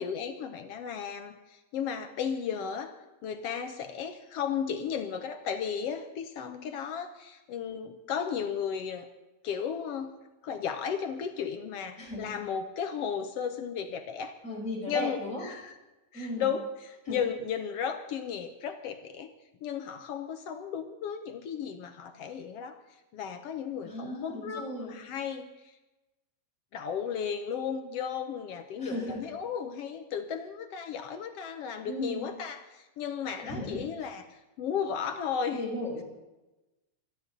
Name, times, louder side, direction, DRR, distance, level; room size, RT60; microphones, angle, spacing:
voice 1, 0.0-2.9 3.2-9.1 9.4-10.2 10.4-14.4 14.9-15.8 16.1-19.3 19.6-22.8 23.1-25.7 26.7-35.6, left 7 dB, 65° left, 7 dB, 1.7 m, -34 dB
voice 2, 12.0-12.3 14.4-15.4 16.1-16.5 17.1-17.2 23.8-24.9 28.8-29.2 31.9-32.3 33.4-33.9 35.5-36.0, equal, 25° left, -4 dB, 6.1 m, -36 dB
27.0 x 10.5 x 4.0 m, 1.0 s
omnidirectional pair, 3.3 m